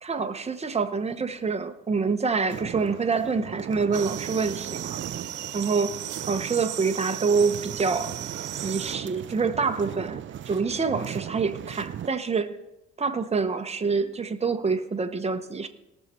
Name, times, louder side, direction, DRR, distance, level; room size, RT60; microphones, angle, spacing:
voice 1, 0.0-5.0 5.5-5.9 6.3-8.1 8.6-10.2 10.5-12.6 13.0-15.7, right 4 dB, 20° right, 7 dB, 0.9 m, -26 dB
sound 1, 2.5-12.1, right 10 dB, 40° right, 0.4 m, -38 dB
sound 2, 3.9-9.0, right 10 dB, 80° right, 1.1 m, -36 dB
18.5 x 6.5 x 4.3 m, 0.92 s
cardioid pair, 90°, 30 cm